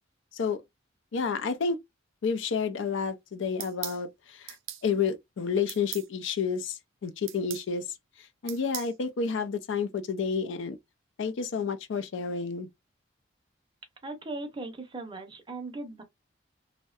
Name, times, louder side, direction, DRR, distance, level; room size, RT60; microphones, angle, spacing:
voice 1, 1.1-1.8 2.2-4.6 4.8-7.8 8.4-10.8 11.2-12.7, left 5 dB, 70° left, 0.4 m, -30 dB
sound 1, 3.6-4.0 4.5-4.8 5.7-6.1 7.3-7.7 8.5-8.9, right 12 dB, 90° right, 0.4 m, -38 dB
voice 2, 14.0-16.0, right 2 dB, 25° right, 0.5 m, -38 dB
2.6 x 2.1 x 2.3 m
head